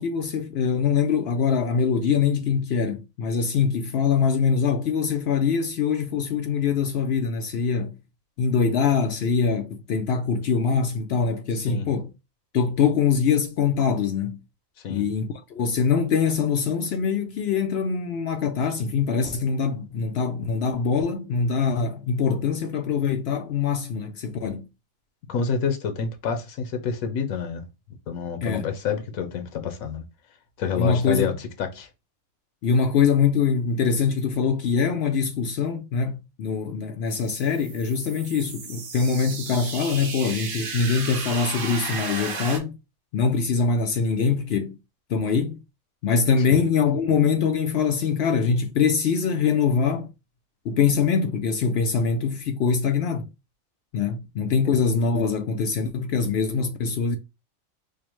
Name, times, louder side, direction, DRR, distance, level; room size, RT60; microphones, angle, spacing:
voice 1, 0.0-7.9 8.4-12.1 12.5-14.4 14.9-24.6 28.4-28.7 30.8-31.3 32.6-42.8 43.1-44.8 45.1-45.6 46.0-50.1 50.7-53.3 53.9-57.2, left 6 dB, 65° left, 0.7 m, -23 dB
voice 2, 25.3-27.6 28.1-30.0 30.6-31.9 46.4-46.6, left 6 dB, 90° left, 1.2 m, -28 dB
sound 1, 37.1-42.6, right 4 dB, 50° right, 0.8 m, -34 dB
5.2 x 2.1 x 3.0 m
omnidirectional pair, 1.4 m